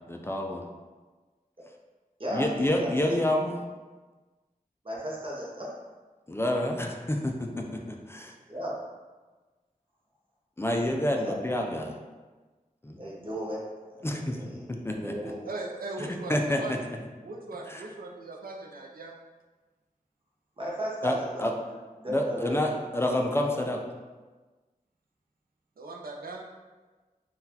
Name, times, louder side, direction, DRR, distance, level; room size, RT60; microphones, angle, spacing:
voice 1, 0.1-0.6 2.3-3.6 6.3-7.8 8.1-8.3 10.6-12.0 12.8-13.0 14.0-14.4 14.7-15.3 16.0-17.0 17.7-17.9 21.0-21.5 22.1-23.8, left 1 dB, 15° left, 1 dB, 0.3 m, -28 dB
voice 2, 2.7-3.2 4.8-5.7 8.5-8.8 11.1-11.4 13.0-13.6 13.9-15.4 20.6-21.5 22.0-22.7, equal, 35° right, -4 dB, 0.8 m, -35 dB
voice 3, 15.2-16.7 17.2-19.1 25.8-26.4, right 2 dB, 80° right, 0 dB, 0.5 m, -39 dB
3.8 x 2.3 x 2.7 m, 1.3 s
wide cardioid pair, 70°, 15 cm